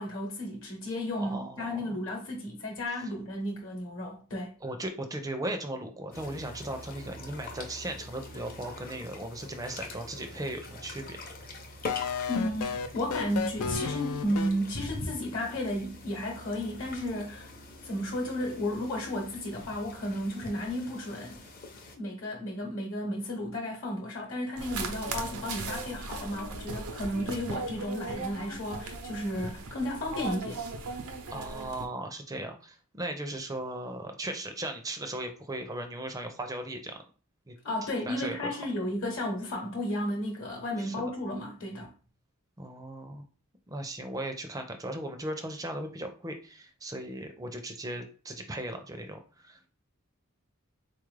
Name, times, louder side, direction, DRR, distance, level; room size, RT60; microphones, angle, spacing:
voice 1, 0.0-4.5 12.3-17.5 17.8-21.4 21.9-30.6 37.6-41.9, left 1 dB, 60° left, 0.9 m, -33 dB
voice 2, 1.2-2.0 4.6-11.2 31.3-37.0 37.5-37.6 38.1-38.6 40.8-41.0 42.6-43.2 43.7-49.7, right 1 dB, 15° right, 0.4 m, -37 dB
sound 1, 6.1-22.0, left 2 dB, 40° left, 0.6 m, -43 dB
sound 2, 11.9-14.5, left 6 dB, 90° left, 0.4 m, -32 dB
sound 3, 24.6-31.9, right 3 dB, 85° right, 0.7 m, -38 dB
4.0 x 2.4 x 3.2 m
head